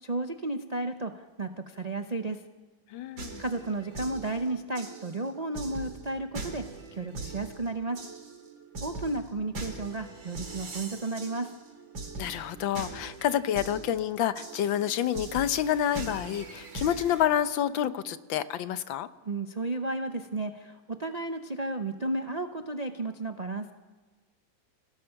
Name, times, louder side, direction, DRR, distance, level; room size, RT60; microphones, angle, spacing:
voice 1, 0.0-2.4 3.4-6.6 6.9-8.0 8.8-11.5 19.2-23.7, right 2 dB, 55° right, 5 dB, 0.4 m, -33 dB
voice 2, 2.9-3.4 12.2-19.1, left 10 dB, 85° left, 13 dB, 1.6 m, -28 dB
sound 1, 3.2-17.3, right 3 dB, 85° right, 3.4 m, -42 dB
28.5 x 18.0 x 5.8 m, 1.3 s
omnidirectional pair, 2.0 m